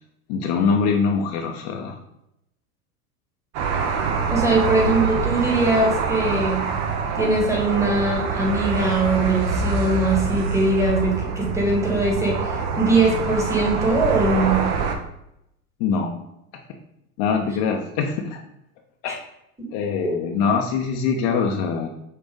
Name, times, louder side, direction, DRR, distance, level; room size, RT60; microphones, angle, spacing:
voice 1, 0.3-2.0 15.8-16.2 17.2-18.4 19.0-19.2 19.7-21.9, left 5 dB, 45° left, 2 dB, 0.6 m, -23 dB
sound 1, 3.5-15.0, right 5 dB, 50° right, 0.7 m, -25 dB
voice 2, 4.3-6.6 7.2-14.7 19.6-19.7, right 2 dB, 5° right, -1 dB, 1.2 m, -21 dB
5.5 x 2.5 x 3.6 m, 0.81 s
hypercardioid pair, 90°, 45 cm